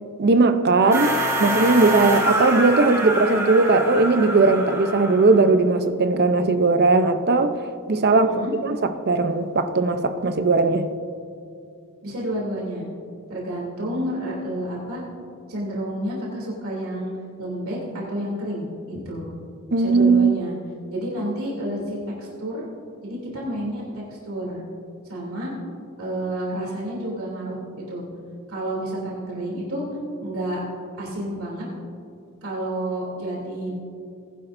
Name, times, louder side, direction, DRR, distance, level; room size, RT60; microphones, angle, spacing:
voice 1, 0.2-7.5 7.9-8.8 9.1-10.9 19.7-20.3, right 3 dB, 50° right, 9 dB, 0.7 m, -18 dB
sound 1, 0.9-5.4, right 1 dB, 15° right, 2.5 m, -25 dB
voice 2, 8.1-8.5 12.0-12.9 13.3-15.0 15.5-17.1 17.4-19.3 19.8-20.5 20.9-22.7 23.0-23.8 24.1-24.6 25.1-25.5 26.0-28.0 28.5-29.8 30.2-30.6 31.0-31.6 32.4-33.7, right 1 dB, 75° right, -5 dB, 3.0 m, -30 dB
19.5 x 11.0 x 2.6 m, 2.5 s
head